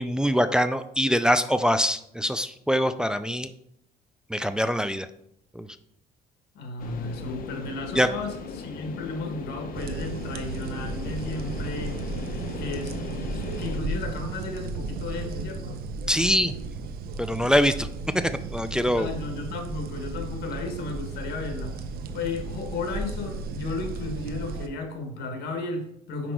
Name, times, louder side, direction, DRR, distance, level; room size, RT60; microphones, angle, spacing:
voice 1, 0.0-3.5 4.3-5.1 5.6-5.7 8.0-8.1 16.1-16.5 17.2-17.9 18.1-19.1, equal, 5° right, 11 dB, 0.3 m, -23 dB
voice 2, 6.5-12.0 12.6-15.8 19.0-21.8 22.1-26.3, left 3 dB, 75° left, 5 dB, 1.5 m, -34 dB
sound 1, 6.8-13.8, left 5 dB, 55° left, 0.8 m, -38 dB
sound 2, 9.8-24.7, right 3 dB, 65° right, 0.8 m, -34 dB
6.0 x 4.9 x 4.7 m, 0.72 s
cardioid pair, 110°, 17 cm